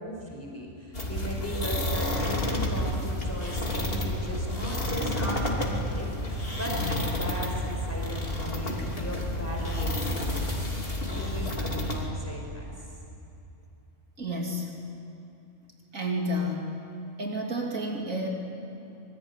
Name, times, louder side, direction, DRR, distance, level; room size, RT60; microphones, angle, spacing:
voice 1, 0.0-10.5 10.8-12.7, equal, 10° left, 0 dB, 5.0 m, -37 dB
sound 1, 0.9-12.1, left 1 dB, 45° left, 3.4 m, -30 dB
voice 2, 14.2-14.7 15.9-16.7 17.2-18.3, equal, 85° right, 0 dB, 3.5 m, -30 dB
26.0 x 22.0 x 9.8 m, 2.8 s
omnidirectional pair, 1.4 m